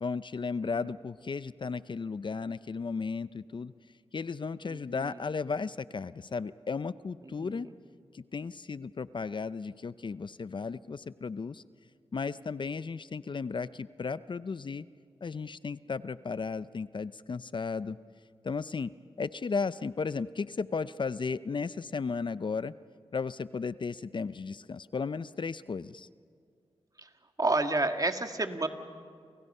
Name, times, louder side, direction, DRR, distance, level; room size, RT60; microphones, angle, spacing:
voice 1, 0.0-3.7 4.1-7.7 8.1-11.6 12.1-14.9 15.2-18.0 18.4-18.9 19.2-22.7 23.1-26.1, left 5 dB, 50° left, 16 dB, 0.5 m, -35 dB
voice 2, 4.7-5.1 7.4-7.7 27.4-28.7, right 2 dB, 35° right, 6 dB, 1.9 m, -30 dB
30.0 x 28.5 x 5.5 m, 2.2 s
cardioid pair, 60°, 10 cm